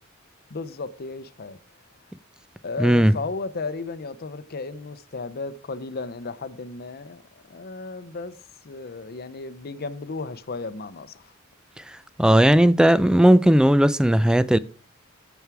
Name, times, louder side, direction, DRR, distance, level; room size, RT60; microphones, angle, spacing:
voice 1, 0.5-1.6 2.6-8.4 8.6-11.3, left 3 dB, 50° left, 0.7 m, -34 dB
voice 2, 2.8-3.1 12.2-14.6, right 1 dB, 5° right, 0.3 m, -16 dB
9.2 x 7.2 x 4.7 m
head